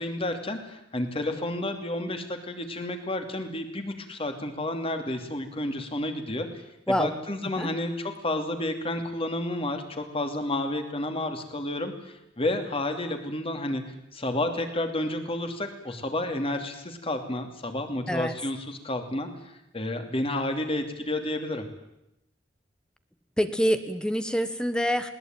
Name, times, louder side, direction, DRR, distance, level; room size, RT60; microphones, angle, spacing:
voice 1, 0.0-6.5 6.9-13.8 14.1-21.7, left 1 dB, 30° left, 6 dB, 2.8 m, -31 dB
voice 2, 23.4-25.1, equal, 5° left, 10 dB, 1.1 m, -26 dB
20.5 x 19.0 x 9.1 m, 0.86 s
head